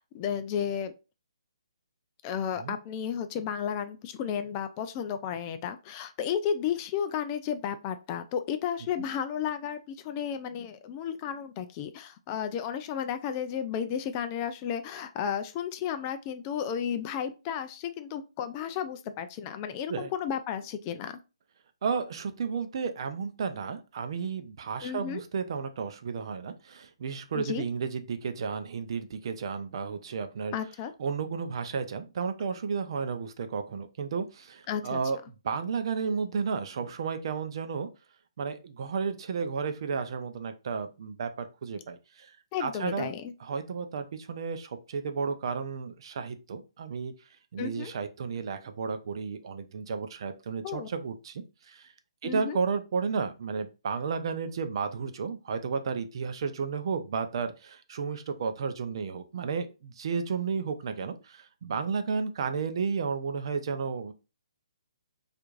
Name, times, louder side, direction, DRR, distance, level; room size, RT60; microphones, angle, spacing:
voice 1, 0.1-0.9 2.2-21.2 24.8-25.2 27.3-27.6 30.5-30.9 34.7-35.0 42.5-43.3 47.6-47.9 50.6-50.9 52.2-52.6, left 8 dB, 25° left, 9 dB, 0.3 m, -33 dB
voice 2, 21.8-30.5 31.0-35.2 35.4-37.9 38.4-42.3 42.6-43.1 43.4-47.1 47.5-51.9 52.2-64.1, right 5 dB, 50° right, 8 dB, 0.5 m, -33 dB
4.4 x 2.5 x 2.4 m, 0.29 s
hypercardioid pair, 145°, 3 cm